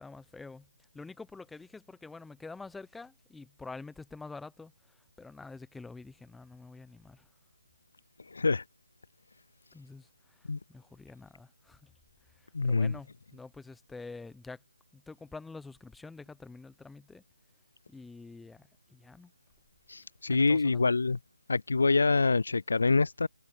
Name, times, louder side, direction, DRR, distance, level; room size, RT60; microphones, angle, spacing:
voice 1, 0.0-7.3 9.7-11.9 12.2-14.6 14.9-17.2 17.9-19.3 20.3-20.9, left 3 dB, 5° left, 1.0 m, -47 dB
voice 2, 8.3-8.6 10.5-10.6 12.5-12.9 19.9-21.2 21.5-23.3, left 4 dB, 70° left, 0.3 m, -26 dB
figure-of-eight pair, 160°, 0 cm